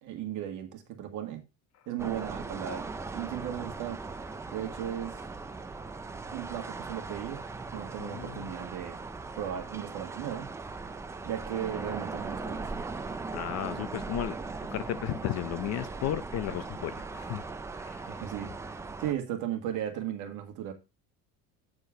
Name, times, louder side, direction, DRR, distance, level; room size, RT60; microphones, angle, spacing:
voice 1, 0.0-1.4 1.9-4.0 4.5-5.2 6.3-7.4 7.7-9.0 9.4-10.5 11.2-12.7 18.1-18.7 19.0-20.7, right 10 dB, 55° right, 1.9 m, -36 dB
sound 1, 2.0-19.1, right 3 dB, 10° right, 0.4 m, -39 dB
voice 2, 8.0-8.5 13.3-14.4 14.7-17.4 17.7-18.1, left 12 dB, 45° left, 0.7 m, -34 dB
8.8 x 4.4 x 5.0 m
cardioid pair, 150°, 37 cm